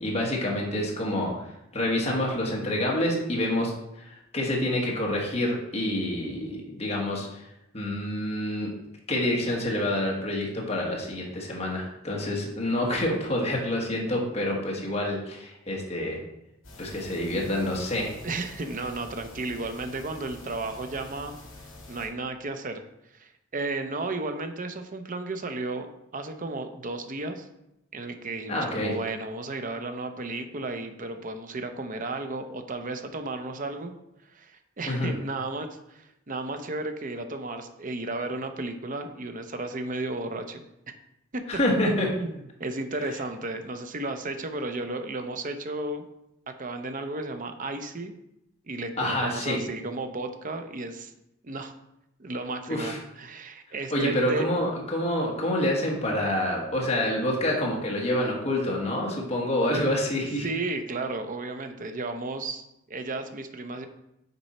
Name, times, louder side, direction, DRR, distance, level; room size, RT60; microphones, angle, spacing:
voice 1, 0.0-1.5 1.7-7.4 7.7-8.7 9.1-16.2 16.8-18.1 28.5-28.9 34.9-35.1 41.5-42.1 49.0-49.6 52.7-53.0 53.9-60.5, left 1 dB, 35° left, -2 dB, 1.6 m, -27 dB
sound 1, 16.6-22.1, left 2 dB, 70° left, 2.6 m, -46 dB
voice 2, 18.2-21.3 21.9-22.8 23.1-25.9 26.1-27.5 27.9-33.9 34.3-40.6 41.3-41.4 41.8-46.0 46.5-48.2 48.6-51.1 51.4-51.7 52.2-54.5 60.4-63.9, right 2 dB, 40° right, 7 dB, 0.7 m, -34 dB
8.1 x 4.5 x 4.3 m, 0.84 s
head